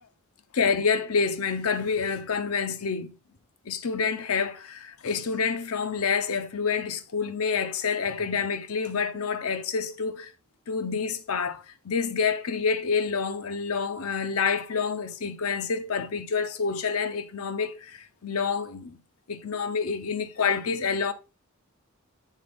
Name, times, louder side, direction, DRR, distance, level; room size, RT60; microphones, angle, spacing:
voice 1, 0.5-3.1 3.7-10.3 10.7-19.0 19.3-21.1, left 5 dB, 85° left, 0.7 m, -28 dB
8.3 x 3.9 x 3.5 m
head